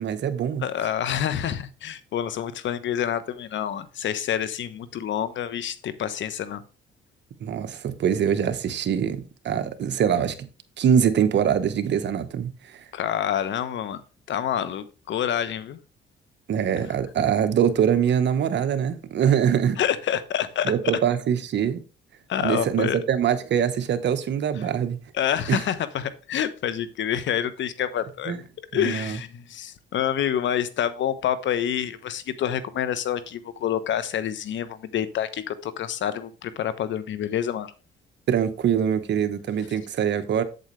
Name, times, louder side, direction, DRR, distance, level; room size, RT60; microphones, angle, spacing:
voice 1, 0.0-0.6 7.4-10.5 10.8-12.8 16.5-19.8 20.6-21.8 22.4-25.0 25.5-25.6 28.3-28.4 28.7-29.2 38.3-40.4, right 8 dB, 65° right, 1.2 m, -23 dB
voice 2, 0.6-6.6 12.9-14.0 14.3-15.8 19.8-20.7 22.3-23.0 25.1-28.3 28.7-37.7, left 10 dB, 70° left, 1.0 m, -27 dB
8.1 x 7.8 x 3.2 m
cardioid pair, 90°, 20 cm